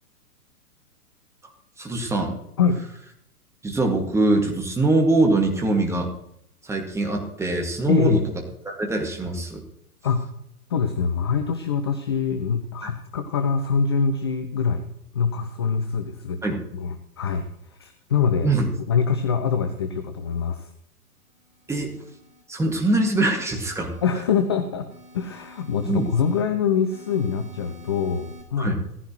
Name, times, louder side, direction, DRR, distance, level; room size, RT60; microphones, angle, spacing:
voice 1, 1.8-2.4 3.6-6.1 6.6-8.2 8.6-9.6 12.8-12.9 16.4-16.6 18.4-18.7 21.7-22.0 22.5-23.9 25.9-26.1 28.6-28.8, right 2 dB, 5° right, 1 dB, 2.1 m, -23 dB
voice 2, 7.9-8.2 10.0-10.3 10.7-14.8 15.1-18.5 18.9-20.7 24.0-24.9 25.1-28.8, left 6 dB, 20° left, 8 dB, 0.4 m, -24 dB
sound 1, 21.3-22.4 22.9-24.4 24.9-26.4 26.9-28.4, equal, 20° right, 4.4 m, -49 dB
16.5 x 14.5 x 3.1 m, 0.74 s
figure-of-eight pair, 115°, 45 cm